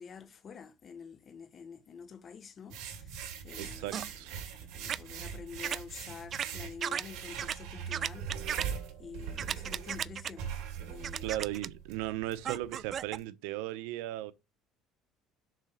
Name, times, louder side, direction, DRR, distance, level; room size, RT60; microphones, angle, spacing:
voice 1, 0.0-4.3 4.6-8.3 9.0-10.5 10.9-11.7, left 6 dB, 35° left, 1.3 m, -48 dB
sound 1, 2.7-13.2, right 8 dB, 70° right, 2.7 m, -42 dB
voice 2, 3.6-4.4 11.2-14.3, right 15 dB, 90° right, 0.8 m, -37 dB
sound 2, 3.9-4.1 4.9-5.0 5.6-5.8 6.3-6.5 6.8-7.0 7.4-7.6 7.9-8.7 9.4-10.3 11.0-11.7 12.4-13.2, right 9 dB, 40° right, 0.3 m, -34 dB
6.5 x 4.1 x 6.5 m
cardioid pair, 120°, 0 cm